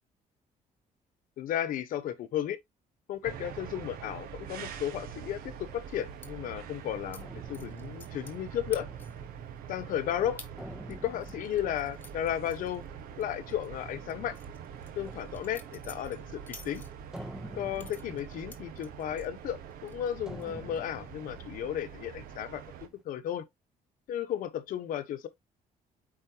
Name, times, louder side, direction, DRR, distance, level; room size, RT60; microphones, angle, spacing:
voice 1, 1.4-2.6 3.1-8.9 9.7-10.4 10.9-12.8 13.2-14.4 14.9-16.8 17.5-23.5 24.1-25.3, left 10 dB, 70° left, 1.2 m, -34 dB
sound 1, 3.1-23.0, right 1 dB, 5° right, 0.6 m, -52 dB
sound 2, 3.2-22.9, right 8 dB, 85° right, 1.3 m, -44 dB
sound 3, 6.2-6.3 7.1-7.2 7.5-8.4 8.7-9.3 9.7-9.8 10.4-10.5 10.9-13.2 13.5-13.7 14.1-17.2 17.8-19.3 19.7-20.1 20.4-20.8, left 3 dB, 10° left, 1.3 m, -51 dB
8.8 x 4.5 x 2.9 m
cardioid pair, 165°, 15 cm